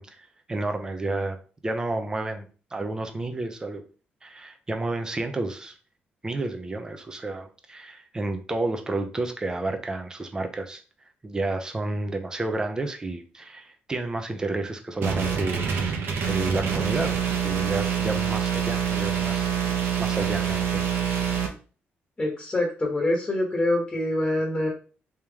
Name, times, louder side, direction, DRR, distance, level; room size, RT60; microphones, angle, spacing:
voice 1, 0.0-1.4 1.6-3.8 4.2-5.7 6.2-10.8 11.2-15.7 16.2-17.1 17.4-19.5 20.0-20.9, right 2 dB, 20° right, 5 dB, 0.6 m, -30 dB
sound 1, 15.0-21.5, right 7 dB, 70° right, 1.0 m, -26 dB
voice 2, 22.2-24.7, left 1 dB, 20° left, -2 dB, 1.1 m, -25 dB
3.4 x 2.9 x 3.5 m, 0.37 s
cardioid pair, 130°, 4 cm